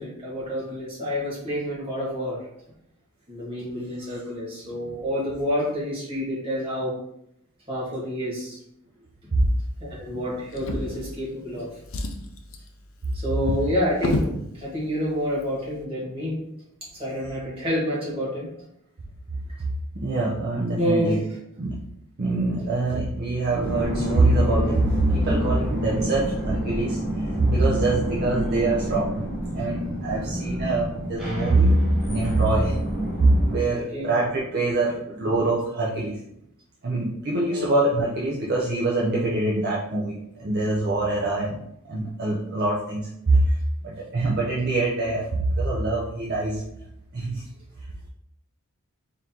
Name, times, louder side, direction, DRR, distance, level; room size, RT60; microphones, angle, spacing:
voice 1, 0.0-2.5 3.3-7.0 7.7-8.6 10.0-11.7 13.1-16.4 16.8-18.5 20.8-21.2 22.5-22.7 33.9-34.1 37.4-37.7, equal, 25° right, -7 dB, 1.6 m, -28 dB
Drawer open or close, 10.5-11.5 11.8-14.4 15.3-15.4 15.8-15.9, left 2 dB, 65° left, 0.5 m, -30 dB
voice 2, 19.9-21.2 21.6-21.8 22.2-29.3 29.5-32.8 33.2-36.2 36.8-41.6 41.9-43.6 43.8-46.6 47.1-47.4, right 2 dB, 45° right, -4 dB, 0.5 m, -24 dB
sound 1, 23.5-33.6, equal, ahead, 1.2 m, -28 dB
3.7 x 3.7 x 2.9 m, 0.77 s
head